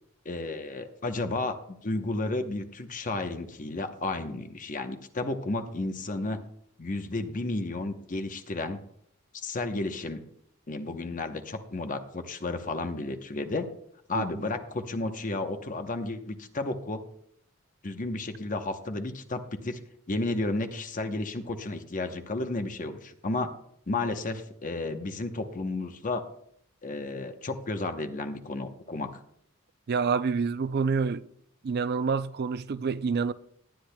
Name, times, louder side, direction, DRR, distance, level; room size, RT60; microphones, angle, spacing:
voice 1, 0.2-6.4 6.8-8.8 9.3-10.2 10.7-13.7 14.1-17.0 17.8-19.8 20.1-23.5 23.9-26.2 26.8-29.1, left 2 dB, 40° left, 0.9 m, -32 dB
voice 2, 14.1-14.5 29.9-31.3 31.6-33.3, right 5 dB, 50° right, 0.4 m, -28 dB
18.0 x 10.5 x 2.2 m
head